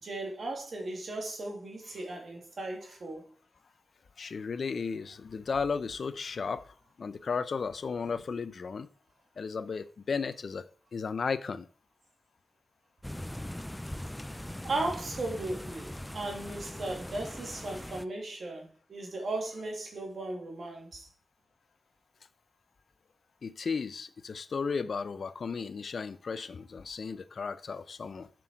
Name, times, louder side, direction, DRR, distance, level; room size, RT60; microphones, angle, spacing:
voice 1, 0.0-3.3 14.6-21.1, right 2 dB, 70° right, 2.3 m, -36 dB
voice 2, 4.2-8.9 9.4-11.7 23.4-28.3, left 5 dB, 70° left, 0.6 m, -34 dB
sound 1, 13.0-18.0, left 1 dB, 10° left, 0.4 m, -41 dB
7.6 x 6.1 x 4.6 m
cardioid pair, 75°, 0 cm